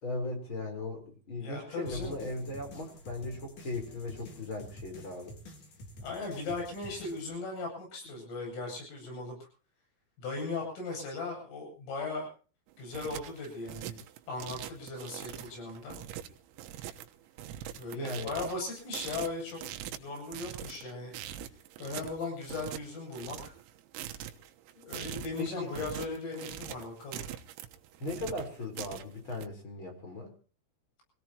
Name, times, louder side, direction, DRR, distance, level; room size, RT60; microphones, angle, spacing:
voice 1, 0.0-5.3 17.9-18.5 25.4-25.7 28.0-30.3, left 2 dB, 25° left, 4 dB, 4.2 m, -38 dB
voice 2, 1.4-2.2 6.0-9.4 10.2-12.3 12.8-14.0 14.3-16.0 17.8-19.6 19.9-21.1 21.8-23.5 24.8-27.2, left 3 dB, 75° left, 0 dB, 10.5 m, -38 dB
sound 1, 1.9-7.3, left 1 dB, 45° left, 3.7 m, -48 dB
sound 2, 12.7-29.5, right 11 dB, 90° right, 3.9 m, -43 dB
25.5 x 18.0 x 3.0 m, 0.39 s
omnidirectional pair, 5.9 m